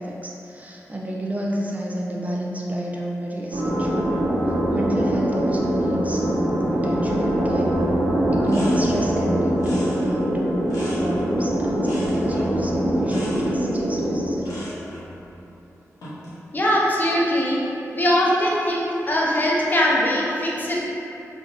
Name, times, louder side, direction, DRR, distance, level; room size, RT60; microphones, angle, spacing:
voice 1, 0.0-4.1 4.5-7.7 8.3-10.6 11.0-14.5, right 1 dB, 25° right, -3 dB, 0.3 m, -30 dB
sound 1, 3.5-14.3, right 1 dB, 90° right, 0.6 m, -23 dB
sound 2, 7.8-8.0 8.2-9.2 9.6-11.4 11.8-12.6 13.0-13.6 14.4-15.1 15.8-16.4, left 1 dB, 90° left, 0.7 m, -38 dB
voice 2, 16.5-17.6 17.9-20.8, equal, 30° left, -5 dB, 0.5 m, -21 dB
3.2 x 2.3 x 2.6 m, 2.9 s
cardioid pair, 65°, 6 cm